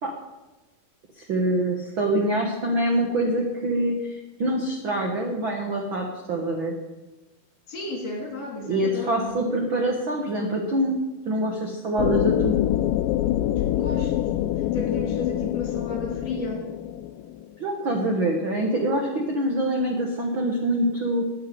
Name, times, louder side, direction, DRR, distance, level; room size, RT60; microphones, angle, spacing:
voice 1, 1.2-6.7 8.6-12.6 17.6-21.3, right 1 dB, 55° right, 1 dB, 1.4 m, -25 dB
voice 2, 7.7-9.4 13.6-14.2 14.6-16.7, left 2 dB, 50° left, 0 dB, 3.7 m, -33 dB
sound 1, 12.0-17.5, left 12 dB, 80° left, 2.2 m, -25 dB
9.5 x 9.5 x 9.3 m, 1.1 s
omnidirectional pair, 3.9 m